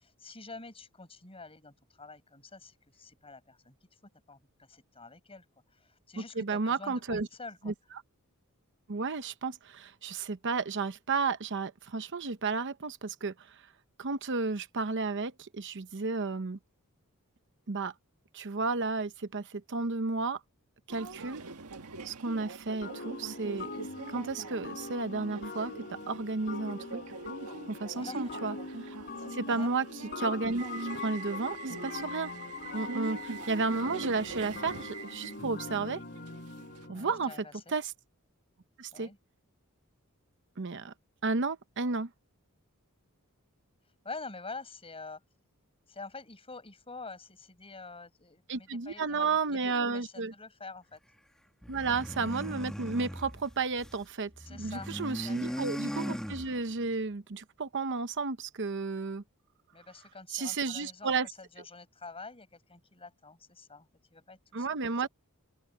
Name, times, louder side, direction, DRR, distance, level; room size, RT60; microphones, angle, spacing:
voice 1, 0.0-3.8 4.3-7.7 27.9-28.3 29.4-29.7 36.9-37.7 38.9-39.2 44.0-45.2 45.9-51.0 54.5-55.0 55.2-55.6 59.7-64.7, left 3 dB, 25° left, 6.2 m, -47 dB
voice 2, 6.4-7.3 7.6-7.7 8.9-13.6 14.0-16.6 17.7-17.9 18.3-20.4 20.9-21.4 22.0-23.7 24.1-27.0 27.6-28.6 28.8-28.9 29.3-29.9 30.2-32.3 32.7-36.0 36.9-37.3 37.7-37.9 38.8-39.1 40.6-40.9 41.2-42.1 48.5-50.3 51.7-59.2 60.3-61.3 64.5-65.1, right 4 dB, 55° right, 0.8 m, -32 dB
Subway metro underground, 20.9-36.9, right 3 dB, 85° right, 1.6 m, -43 dB
sound 1, 22.8-37.4, left 3 dB, 45° left, 5.0 m, -42 dB
sound 2, 51.6-54.0 54.3-56.9, equal, 5° left, 2.6 m, -38 dB
open air
head